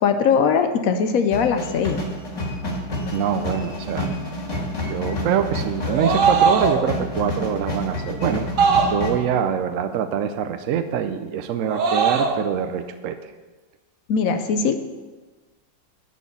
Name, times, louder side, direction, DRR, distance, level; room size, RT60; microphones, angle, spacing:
voice 1, 0.0-2.0 14.1-14.8, left 6 dB, 70° left, 7 dB, 0.9 m, -20 dB
sound 1, 1.3-9.2, left 1 dB, 45° left, 1.8 m, -29 dB
voice 2, 3.1-4.1 4.8-8.5 8.8-13.3, right 8 dB, 75° right, 9 dB, 0.7 m, -24 dB
sound 2, 5.8-6.9 8.6-9.3 11.6-12.4, right 5 dB, 55° right, 1.0 m, -20 dB
10.5 x 4.3 x 6.9 m, 1.2 s
omnidirectional pair, 1.9 m